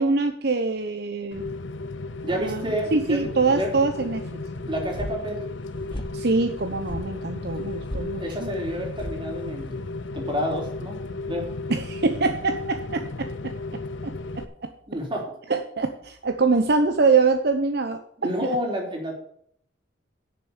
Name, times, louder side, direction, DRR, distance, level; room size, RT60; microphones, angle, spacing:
voice 1, 0.0-1.5 2.3-2.6 2.9-4.3 6.1-8.5 11.7-13.5 14.0-14.1 14.6-14.7 15.5-18.0 18.4-18.6, right 3 dB, 60° right, 7 dB, 0.9 m, -24 dB
Rain, 1.3-14.4, left 2 dB, 85° left, 0.8 m, -34 dB
voice 2, 2.2-3.7 4.7-5.4 8.2-9.8 10.1-11.0 11.3-11.5 14.9-15.3 18.2-19.1, equal, 25° right, 1 dB, 3.4 m, -29 dB
sound 1, 4.7-10.1, left 1 dB, 25° left, 1.2 m, -39 dB
10.0 x 6.9 x 7.0 m, 0.66 s
head